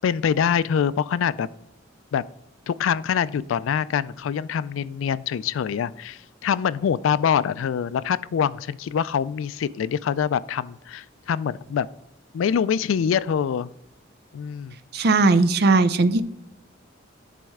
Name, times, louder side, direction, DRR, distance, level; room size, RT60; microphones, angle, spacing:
voice 1, 0.0-1.5 2.1-2.2 2.7-11.9 12.3-13.7 14.3-14.8, left 7 dB, 80° left, 18 dB, 0.3 m, -24 dB
voice 2, 14.9-16.2, right 3 dB, 55° right, 12 dB, 0.5 m, -18 dB
11.0 x 4.2 x 3.6 m, 0.80 s
head